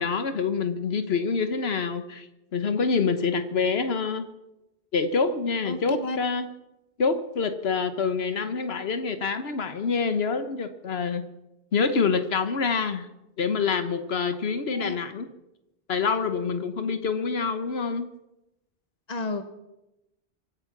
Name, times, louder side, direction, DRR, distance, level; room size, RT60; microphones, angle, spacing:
voice 1, 0.0-2.3 2.5-4.3 4.9-6.5 7.0-11.3 11.7-13.1 13.4-15.3 15.9-18.1, left 5 dB, 80° left, 10 dB, 1.3 m, -26 dB
voice 2, 5.6-6.2 14.7-15.0 19.1-19.4, left 2 dB, 40° left, 9 dB, 1.3 m, -31 dB
24.0 x 8.8 x 6.0 m, 0.93 s
omnidirectional pair, 1.0 m